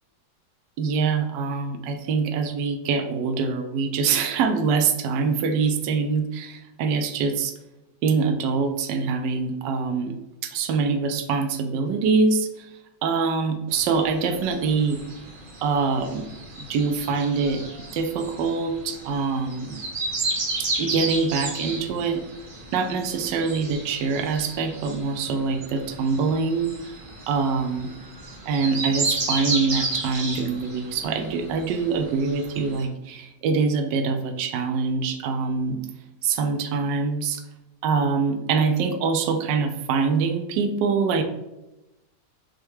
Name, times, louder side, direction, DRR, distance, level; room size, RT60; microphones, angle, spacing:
voice 1, 0.8-7.5 8.0-10.2 10.4-12.7 13.0-15.0 15.6-16.3 16.6-17.6 17.9-19.8 20.6-22.2 22.7-26.9 27.3-27.9 28.5-35.8 36.2-37.4 37.8-41.2, right 5 dB, 85° right, 6 dB, 1.2 m, -24 dB
sound 1, 13.7-32.8, right 2 dB, 50° right, 0.6 m, -33 dB
6.4 x 2.3 x 3.1 m, 0.95 s
omnidirectional pair, 1.9 m